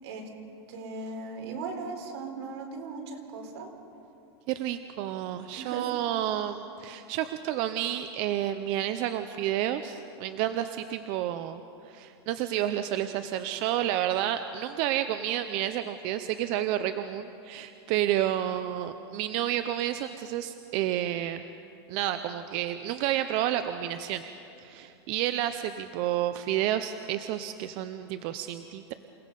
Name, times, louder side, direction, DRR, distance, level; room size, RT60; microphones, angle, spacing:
voice 1, 0.7-3.7 5.5-5.9, right 4 dB, 75° right, 2 dB, 3.9 m, -38 dB
voice 2, 4.5-21.4 21.9-24.2 24.6-28.9, right 12 dB, 40° right, 10 dB, 0.6 m, -30 dB
28.5 x 18.0 x 5.4 m, 2.7 s
supercardioid pair, 160°, 14 cm